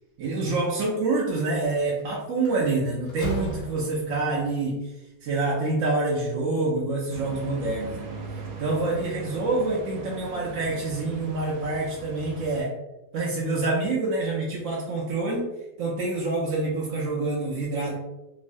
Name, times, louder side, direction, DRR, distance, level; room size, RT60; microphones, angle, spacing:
voice 1, 0.2-4.8 5.2-8.1 8.6-12.7 13.1-15.5 15.8-17.9, right 3 dB, 70° right, -4 dB, 0.7 m, -26 dB
Slam, 1.8-2.0 2.4-4.3, right 1 dB, 65° left, 1.1 m, -35 dB
sound 1, 7.1-12.6, right 3 dB, 90° right, 1.2 m, -39 dB
3.0 x 2.0 x 2.5 m, 0.95 s
omnidirectional pair, 1.8 m